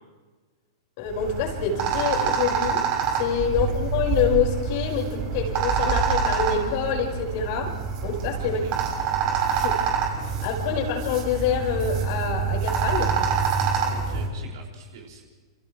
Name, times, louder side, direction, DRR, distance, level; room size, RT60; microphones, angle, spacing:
voice 1, 1.0-2.9 3.1-8.6 9.6-9.8 10.4-13.3, left 7 dB, 50° left, 0 dB, 5.3 m, -26 dB
sound 1, 1.1-14.3, right 6 dB, 40° right, 5.8 m, -26 dB
voice 2, 8.4-8.7 13.9-15.3, right 6 dB, 60° right, 0 dB, 5.9 m, -43 dB
29.5 x 28.5 x 3.3 m, 1.4 s
figure-of-eight pair, 105°, 2 cm